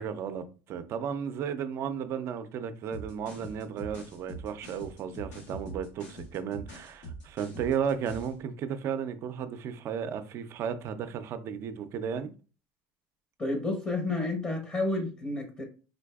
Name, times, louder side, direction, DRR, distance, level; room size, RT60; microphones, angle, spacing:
voice 1, 0.0-12.3, right 7 dB, 50° right, 0.5 m, -34 dB
sound 1, 2.9-8.4, right 1 dB, 85° left, 1.4 m, -43 dB
voice 2, 13.4-15.6, left 2 dB, 25° left, 0.8 m, -30 dB
3.8 x 2.5 x 2.3 m
supercardioid pair, 105°, 6 cm